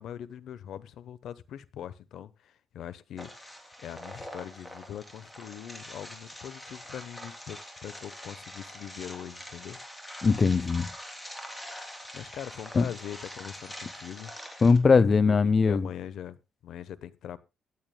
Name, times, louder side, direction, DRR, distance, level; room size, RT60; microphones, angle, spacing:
voice 1, 0.0-9.8 12.1-14.6 14.9-15.4 15.6-17.4, left 10 dB, 75° left, 0.9 m, -42 dB
sound 1, 3.2-14.8, equal, 10° left, 3.4 m, -44 dB
voice 2, 10.2-10.9 12.8-12.9 14.6-15.9, left 4 dB, 35° left, 0.6 m, -21 dB
23.5 x 8.8 x 2.2 m
cardioid pair, 110°, 0 cm